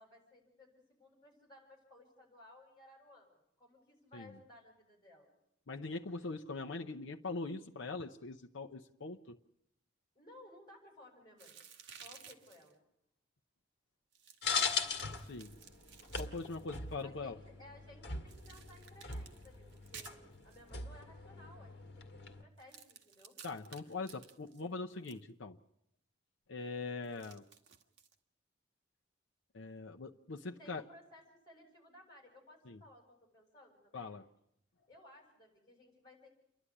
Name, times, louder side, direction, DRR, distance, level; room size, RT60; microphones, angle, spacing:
voice 1, 0.0-5.3 10.1-11.6 12.0-12.8 17.0-20.2 20.4-23.3 30.4-34.2 34.9-36.3, left 1 dB, 20° left, 1 dB, 7.6 m, -59 dB
voice 2, 5.7-9.4 15.2-15.5 16.2-17.4 23.4-25.6 26.5-27.4 29.5-30.8 32.7-32.8 33.9-34.2, left 3 dB, 80° left, 3 dB, 0.8 m, -42 dB
sound 1, 11.4-12.7 14.1-17.0 18.3-20.7 22.6-25.2 27.0-28.1, right 7 dB, 70° right, 1.8 m, -56 dB
sound 2, 14.4-22.4, left 5 dB, 60° left, 1.9 m, -41 dB
29.0 x 11.5 x 9.8 m, 0.79 s
head